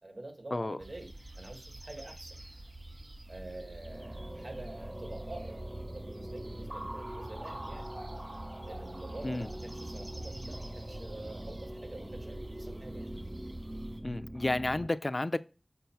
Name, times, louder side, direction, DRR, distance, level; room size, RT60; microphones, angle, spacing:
voice 1, 0.0-2.4 3.3-7.9 8.7-13.1, right 2 dB, 85° right, 1.7 m, -47 dB
sound 1, 0.8-14.0, right 1 dB, 65° right, 1.4 m, -47 dB
sound 2, 3.3-14.9, right 1 dB, 25° right, 0.3 m, -43 dB
voice 2, 14.0-15.4, left 2 dB, 55° left, 0.4 m, -31 dB
6.9 x 4.6 x 4.5 m
wide cardioid pair, 50°, 0 cm